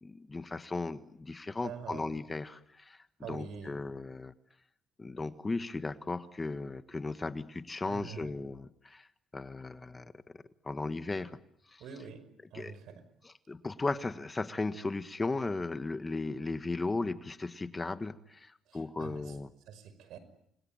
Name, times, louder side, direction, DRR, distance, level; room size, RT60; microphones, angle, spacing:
voice 1, 0.0-4.3 5.0-9.1 9.3-10.2 10.6-11.4 11.7-11.8 12.5-12.7 13.2-19.5, left 3 dB, 20° left, 11 dB, 1.4 m, -36 dB
voice 2, 1.6-2.1 3.2-3.8 7.9-8.3 11.8-12.2 12.5-13.0 18.7-19.4 19.7-20.2, right 7 dB, 80° right, 13 dB, 5.5 m, -45 dB
29.5 x 22.0 x 8.9 m, 0.73 s
cardioid pair, 105°, 0 cm